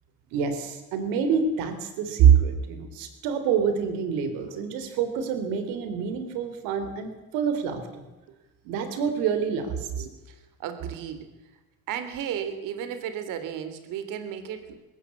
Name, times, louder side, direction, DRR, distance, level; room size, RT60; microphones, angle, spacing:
voice 1, 0.3-8.0 8.6-10.0, right 7 dB, 90° right, 9 dB, 3.7 m, -25 dB
voice 2, 9.9-11.3 11.9-14.9, right 9 dB, 70° right, 10 dB, 3.3 m, -35 dB
21.0 x 17.5 x 8.5 m, 1.1 s
cardioid pair, 125°, 33 cm